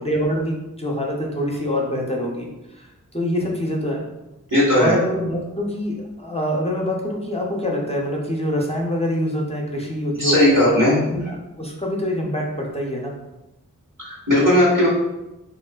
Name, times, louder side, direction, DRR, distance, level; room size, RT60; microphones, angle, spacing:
voice 1, 0.0-4.0 4.8-10.6 11.1-13.1, equal, 20° left, -2 dB, 0.5 m, -25 dB
voice 2, 4.5-5.0 10.2-11.0 14.0-14.9, left 1 dB, 70° right, -6 dB, 1.3 m, -16 dB
3.5 x 2.4 x 2.2 m, 0.97 s
wide cardioid pair, 45°, 33 cm